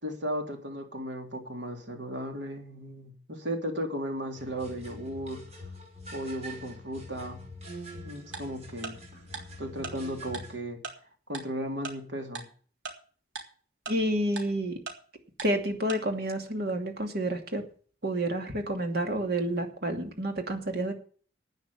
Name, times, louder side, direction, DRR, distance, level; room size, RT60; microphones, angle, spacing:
voice 1, 0.0-5.4 6.1-7.4 7.9-9.0 9.6-10.8 11.3-12.5, equal, 75° right, 3 dB, 3.4 m, -35 dB
sound 1, 4.4-10.6, left 1 dB, 35° right, 5.5 m, -45 dB
Tick-tock, 8.3-8.4 8.8-8.9 9.3-9.4 9.8-9.9 10.3-10.4 10.8-10.9 11.3-11.4 11.8-11.9 12.3-12.4 12.8-12.9 13.4-13.5 13.9-14.0 14.4-14.5 14.9-15.0 15.4-15.5 15.9-16.0, right 4 dB, 90° right, 3.4 m, -37 dB
voice 2, 13.9-14.8 15.4-17.6 18.0-20.9, right 1 dB, 55° right, 4 dB, 2.6 m, -29 dB
11.5 x 9.2 x 7.1 m, 0.43 s
head